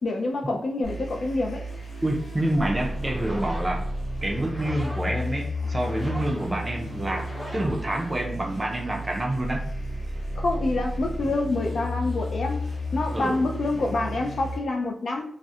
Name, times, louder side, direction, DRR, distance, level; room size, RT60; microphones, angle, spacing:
voice 1, 0.0-1.6 10.4-12.6 12.9-15.2, left 2 dB, 60° left, 0.3 m, -27 dB
sound 1, 0.8-14.6, left 1 dB, 80° left, 0.9 m, -32 dB
voice 2, 2.0-3.8 4.2-7.3 7.5-9.7 13.1-13.4, right 1 dB, 20° right, 0.4 m, -27 dB
sound 2, 2.8-8.7, equal, 20° left, 0.7 m, -42 dB
2.3 x 2.0 x 2.7 m
wide cardioid pair, 140°, 0 cm